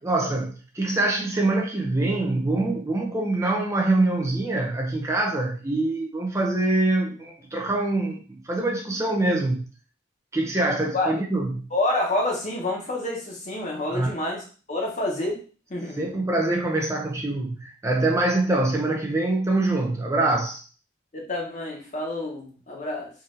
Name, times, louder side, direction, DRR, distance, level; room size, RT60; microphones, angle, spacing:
voice 1, 0.0-9.7 10.3-11.6 13.9-14.1 15.9-20.6, right 2 dB, 15° right, 0 dB, 0.6 m, -24 dB
voice 2, 11.7-15.4 15.7-16.0 21.1-23.1, left 2 dB, 40° left, 0 dB, 1.1 m, -28 dB
3.9 x 2.7 x 3.9 m, 0.38 s
head